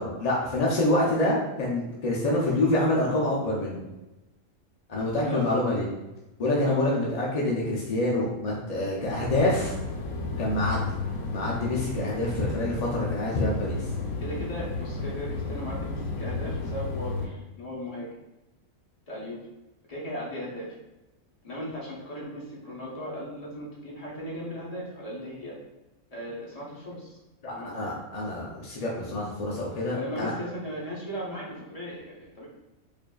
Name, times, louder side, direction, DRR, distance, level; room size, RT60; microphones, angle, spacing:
voice 1, 0.0-3.8 4.9-5.8 6.4-9.7 10.4-10.8 11.3-13.8 27.4-30.3, left 1 dB, 55° left, -5 dB, 0.4 m, -26 dB
voice 2, 5.2-5.6 6.6-7.5 14.2-18.1 19.1-19.4 19.9-20.7 21.4-25.5 26.1-27.2 27.5-27.7 29.9-32.5, equal, 30° left, -5 dB, 0.9 m, -37 dB
sound 1, 9.0-17.3, left 3 dB, 85° left, 1.1 m, -33 dB
4.9 x 2.7 x 2.3 m, 1.0 s
omnidirectional pair, 1.5 m